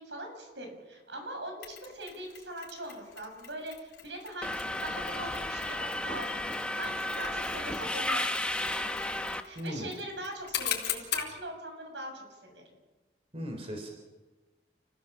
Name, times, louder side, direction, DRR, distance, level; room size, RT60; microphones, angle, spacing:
voice 1, 0.0-6.5 6.8-8.9 9.4-12.6, right 1 dB, 75° right, 3 dB, 7.2 m, -42 dB
Mechanisms, 1.6-11.4, left 10 dB, 70° left, 4.3 m, -41 dB
Subway metro underground, 4.4-9.4, left 1 dB, 5° left, 1.1 m, -33 dB
voice 2, 9.6-9.9 13.3-13.9, equal, 35° right, 3 dB, 4.0 m, -37 dB
30.0 x 16.5 x 7.3 m, 1.2 s
head